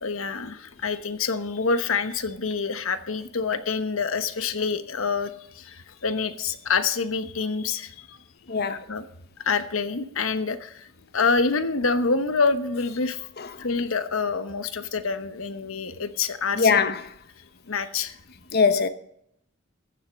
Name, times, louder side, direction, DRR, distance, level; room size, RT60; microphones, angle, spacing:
voice 1, 0.0-8.2 8.7-9.1 9.5-10.9 11.1-13.2 13.6-16.8 17.7-18.1, left 4 dB, 80° left, 1.1 m, -27 dB
voice 2, 8.5-8.8 13.4-13.5 16.6-17.0 18.5-18.9, left 5 dB, 50° left, 1.0 m, -21 dB
14.5 x 7.8 x 6.4 m
head